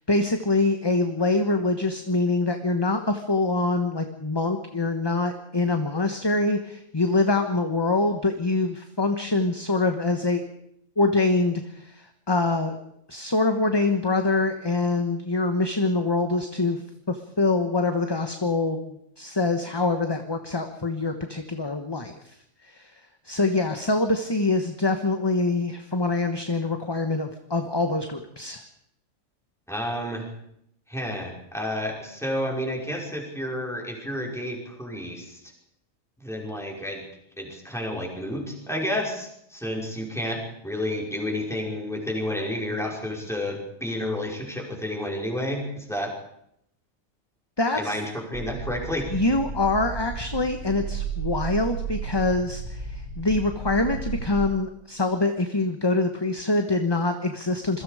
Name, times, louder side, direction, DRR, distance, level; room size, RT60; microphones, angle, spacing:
voice 1, 0.1-10.4 11.0-12.8 13.1-22.3 22.6-23.0 23.2-28.6 47.6-48.0 49.1-57.8, left 2 dB, 20° left, 6 dB, 1.3 m, -25 dB
voice 2, 29.7-30.3 30.9-35.4 36.2-37.0 37.4-46.1 47.8-49.1, left 1 dB, ahead, -1 dB, 5.4 m, -30 dB
sound 1, 48.3-54.4, right 6 dB, 70° right, 4.7 m, -33 dB
27.0 x 22.5 x 5.1 m, 0.74 s
omnidirectional pair, 1.4 m